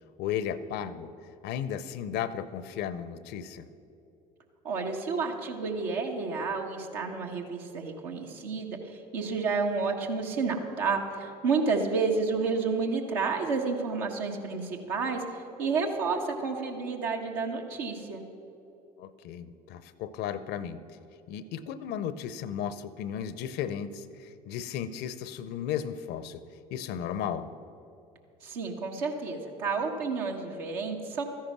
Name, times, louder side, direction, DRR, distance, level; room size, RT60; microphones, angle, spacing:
voice 1, 0.2-1.1 1.4-3.7 19.0-20.8 21.3-26.4 26.7-27.5, left 9 dB, 55° left, 15 dB, 0.7 m, -35 dB
voice 2, 4.6-15.2 15.6-18.2 28.4-31.2, right 4 dB, 70° right, 1 dB, 1.5 m, -30 dB
13.5 x 10.5 x 6.1 m, 2.8 s
hypercardioid pair, 65°, 20 cm